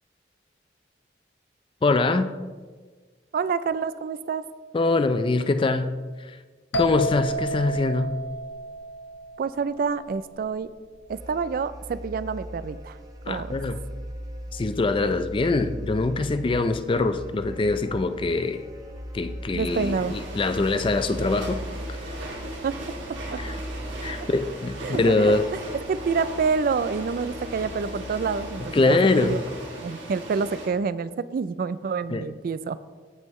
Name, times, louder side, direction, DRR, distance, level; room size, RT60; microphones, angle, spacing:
voice 1, 1.8-2.3 4.7-6.4 6.8-8.2 13.3-13.8 14.5-18.7 19.1-21.6 23.4-23.6 24.0-25.4 28.6-29.4 32.1-32.3, left 3 dB, 25° left, 11 dB, 0.4 m, -23 dB
voice 2, 3.3-4.4 9.4-10.7 11.1-13.0 13.3-13.6 19.5-20.1 22.6-22.7 23.3-23.4 24.2-24.3 24.8-25.4 25.7-29.4 29.8-32.8, right 5 dB, 50° right, 16 dB, 0.3 m, -28 dB
sound 1, 6.7-10.4, equal, 70° left, 1.0 m, -31 dB
sound 2, 11.1-29.3, equal, 20° right, 0.8 m, -39 dB
sound 3, 19.6-30.7, right 1 dB, 80° right, 2.3 m, -38 dB
15.5 x 5.5 x 3.1 m, 1.4 s
head